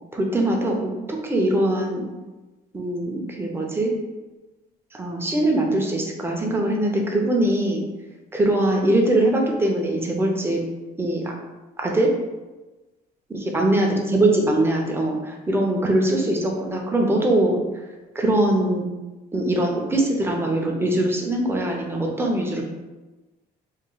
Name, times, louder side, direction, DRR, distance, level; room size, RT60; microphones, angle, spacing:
voice 1, 0.1-2.0 2.7-3.9 4.9-7.8 8.3-10.6 11.0-11.3 11.8-12.1 13.3-17.6 18.1-18.9 19.3-22.6, right 1 dB, 15° right, 0 dB, 0.6 m, -22 dB
3.1 x 2.1 x 3.8 m, 1.1 s
cardioid pair, 110°, 17 cm